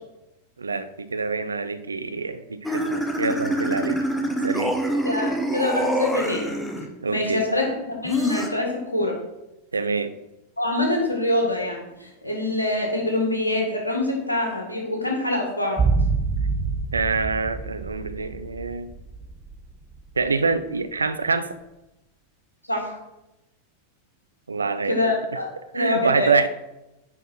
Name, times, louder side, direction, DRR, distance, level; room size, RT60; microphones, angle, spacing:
voice 1, 0.6-4.0 4.4-4.8 7.0-7.5 9.7-10.1 16.9-18.9 20.2-21.6 24.5-24.9 25.7-26.5, right 4 dB, 75° right, 11 dB, 0.5 m, -25 dB
sound 1, 2.6-6.9 8.0-8.5, right 1 dB, 5° left, 1.0 m, -26 dB
voice 2, 5.0-6.5 7.1-9.2 10.6-15.8 22.7-23.0 24.8-25.5 25.7-26.3, left 2 dB, 85° left, 0 dB, 1.9 m, -25 dB
sound 2, 15.8-20.0 20.3-20.4, right 4 dB, 20° right, 0.5 m, -26 dB
9.6 x 4.5 x 4.5 m, 0.93 s
figure-of-eight pair, 90°, 0 cm